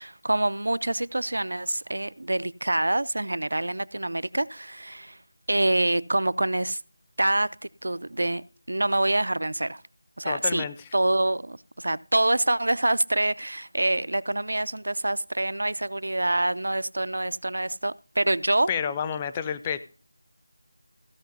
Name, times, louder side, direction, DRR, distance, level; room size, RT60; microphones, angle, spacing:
voice 1, 0.0-5.2 5.5-6.8 7.2-7.5 7.8-9.8 10.2-10.6 10.9-18.7, right 1 dB, 70° right, 0.4 m, -26 dB
voice 2, 10.2-10.9 18.7-19.8, left 7 dB, 15° left, 0.5 m, -29 dB
15.0 x 5.6 x 5.4 m
figure-of-eight pair, 165°, 0 cm